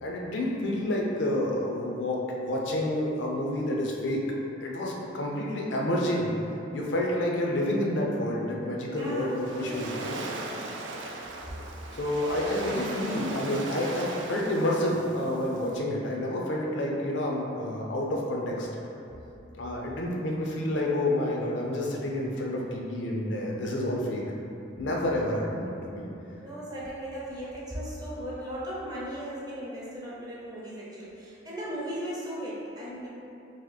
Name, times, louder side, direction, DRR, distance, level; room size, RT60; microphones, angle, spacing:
voice 1, 0.0-4.2 4.6-6.3 6.7-9.9 11.9-18.7 19.5-24.2 24.8-26.1, left 1 dB, 65° left, -2 dB, 0.5 m, -29 dB
voice 2, 8.9-9.9 10.2-10.8 26.4-33.1, equal, 20° right, -7 dB, 0.7 m, -37 dB
Waves surf, 9.0-15.8, right 2 dB, 65° right, 0.4 m, -38 dB
2.9 x 2.6 x 3.9 m, 2.8 s
head